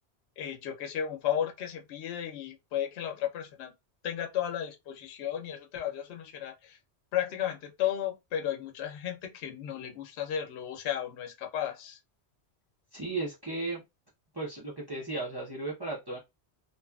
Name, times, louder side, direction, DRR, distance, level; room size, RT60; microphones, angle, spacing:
voice 1, 0.4-3.7 4.0-6.8 7.1-12.0, left 10 dB, 80° left, 0.9 m, -34 dB
voice 2, 12.9-13.8 14.3-16.2, right 2 dB, 25° right, 0.7 m, -35 dB
2.8 x 2.3 x 2.3 m
omnidirectional pair, 1.1 m